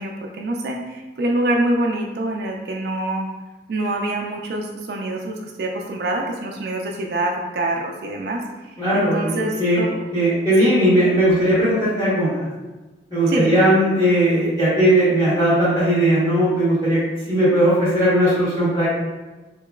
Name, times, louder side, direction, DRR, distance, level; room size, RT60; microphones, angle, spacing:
voice 1, 0.0-3.3 3.7-10.0 10.6-10.7 13.3-13.6, right 1 dB, 65° right, 0 dB, 0.3 m, -25 dB
voice 2, 8.8-9.9 10.1-12.5 13.1-18.9, right 1 dB, 25° left, -13 dB, 1.1 m, -18 dB
3.7 x 2.8 x 2.3 m, 1.2 s
head